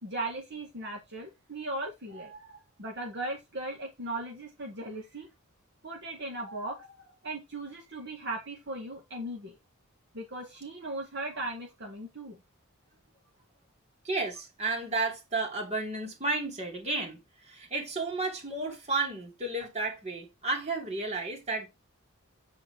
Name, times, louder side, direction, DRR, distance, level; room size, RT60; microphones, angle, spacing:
voice 1, 0.0-5.3 5.8-9.5 10.1-12.4, right 2 dB, 55° right, 2.2 m, -38 dB
voice 2, 14.0-21.7, right 3 dB, 30° right, 2.8 m, -32 dB
8.8 x 4.1 x 4.7 m
head